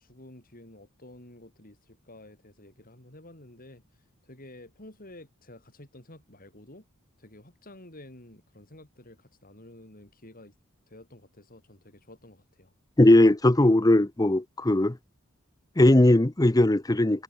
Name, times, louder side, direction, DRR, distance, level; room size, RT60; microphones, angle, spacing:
voice 1, 0.0-3.8 4.2-6.8 7.2-10.5 10.9-12.7, left 1 dB, 40° left, 6.3 m, -50 dB
voice 2, 13.0-15.0 15.8-17.2, left 1 dB, 15° left, 0.7 m, -19 dB
head